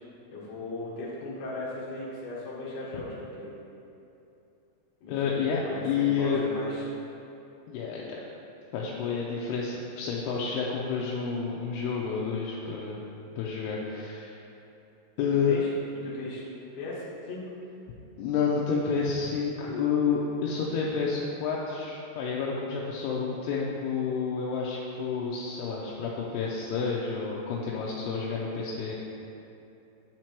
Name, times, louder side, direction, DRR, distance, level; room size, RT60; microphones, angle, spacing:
voice 1, 0.3-3.5 5.0-6.9 15.5-15.7 16.0-16.4 16.8-17.4, left 2 dB, 60° left, -7 dB, 2.4 m, -38 dB
voice 2, 5.1-6.4 7.7-8.2 8.7-13.0 13.4-14.4 15.2-15.6 18.2-29.0, left 5 dB, 85° left, -4 dB, 2.6 m, -29 dB
8.4 x 4.6 x 4.4 m, 2.8 s
omnidirectional pair, 4.7 m